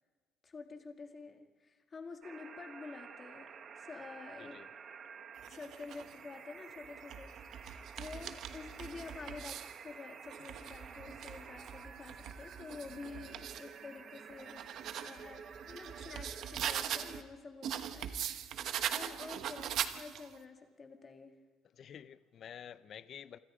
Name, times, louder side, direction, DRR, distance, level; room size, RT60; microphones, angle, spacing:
voice 1, 0.4-4.6 5.5-7.4 7.6-7.7 8.0-9.6 9.8-14.6 15.0-18.5 18.9-21.3, left 4 dB, 20° left, 5 dB, 1.9 m, -49 dB
sound 1, 2.2-17.2, right 6 dB, 30° right, 1.3 m, -51 dB
sound 2, 5.4-6.1 6.8-9.8 10.2-13.7 14.1-17.2 17.6-20.4, right 9 dB, 50° right, 1.1 m, -41 dB
voice 2, 21.8-23.4, left 9 dB, 35° left, 15 dB, 0.6 m, -50 dB
27.5 x 25.0 x 5.0 m, 1.4 s
cardioid pair, 175°, 0 cm